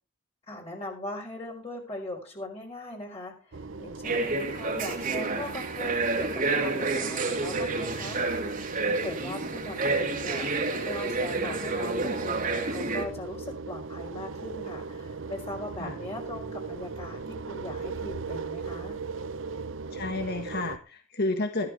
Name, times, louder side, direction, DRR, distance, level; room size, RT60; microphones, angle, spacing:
voice 1, 0.5-10.5 10.8-19.0, left 1 dB, 30° left, -1 dB, 4.3 m, -40 dB
sound 1, 3.5-20.8, right 4 dB, 65° right, 0.7 m, -38 dB
sound 2, 4.0-13.0, right 3 dB, 40° right, 2.3 m, -29 dB
voice 2, 19.9-21.7, left 2 dB, 50° left, 6 dB, 1.6 m, -31 dB
14.5 x 14.0 x 3.4 m, 0.33 s
head